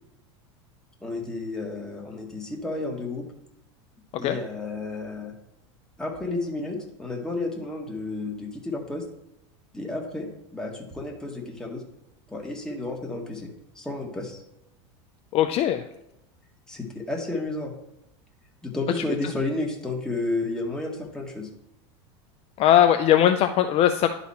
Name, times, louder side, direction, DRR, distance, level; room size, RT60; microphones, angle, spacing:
voice 1, 1.0-3.2 4.2-5.3 6.0-9.0 9.7-11.8 12.3-13.5 13.7-14.4 16.7-17.7 18.6-21.5, left 2 dB, 5° left, -1 dB, 1.8 m, -31 dB
voice 2, 15.3-15.8 22.6-24.1, left 11 dB, 40° left, 7 dB, 0.5 m, -19 dB
10.5 x 4.2 x 4.2 m, 0.83 s
supercardioid pair, 115°, 15 cm